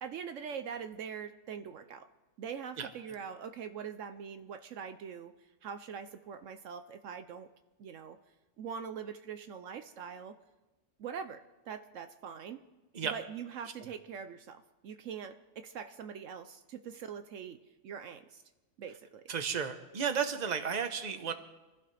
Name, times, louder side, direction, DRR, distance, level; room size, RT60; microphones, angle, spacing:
voice 1, 0.0-2.1 2.4-7.5 7.8-8.2 8.6-10.4 11.0-12.6 13.0-18.4 18.8-19.2, right 7 dB, 70° right, 9 dB, 1.0 m, -43 dB
voice 2, 19.3-21.3, right 6 dB, 35° right, 7 dB, 1.1 m, -33 dB
26.0 x 15.5 x 3.3 m, 1.1 s
omnidirectional pair, 1.4 m